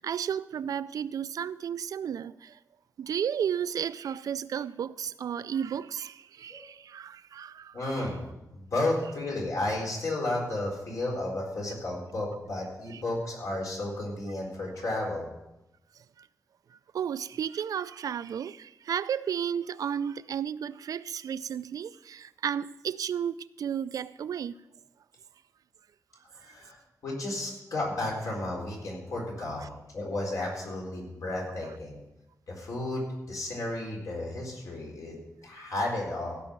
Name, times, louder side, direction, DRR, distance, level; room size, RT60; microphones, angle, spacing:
voice 1, 0.0-2.6 3.0-8.0 12.9-13.0 16.2-16.3 16.7-24.6 29.6-29.7, right 8 dB, 75° right, 0.4 m, -33 dB
voice 2, 7.7-8.2 8.5-15.2 26.3-26.8 27.0-32.0 32.5-35.1 35.4-36.4, left 2 dB, 65° left, 4.1 m, -33 dB
16.0 x 5.7 x 7.3 m
wide cardioid pair, 160°, 6 cm